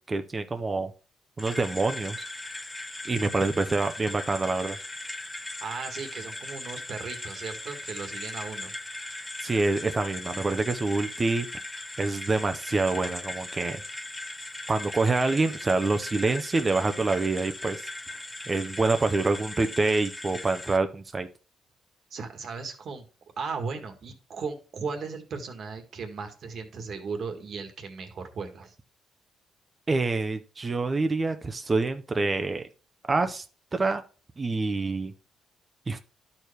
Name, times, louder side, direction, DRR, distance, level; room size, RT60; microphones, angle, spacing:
voice 1, 0.1-0.9 1.4-2.2 3.0-4.8 9.4-11.5 12.0-13.8 14.7-17.9 18.5-21.3 29.9-32.7 33.1-33.4 33.7-34.0 34.4-35.1 35.9-36.0, right 3 dB, 30° right, 8 dB, 0.7 m, -26 dB
sound 1, 1.4-20.8, left 2 dB, 15° left, 0.7 m, -39 dB
voice 2, 5.6-8.7 22.1-23.0 23.4-28.7, right 5 dB, 60° right, 6 dB, 1.7 m, -36 dB
12.0 x 4.6 x 3.3 m, 0.36 s
cardioid pair, 90°, 0 cm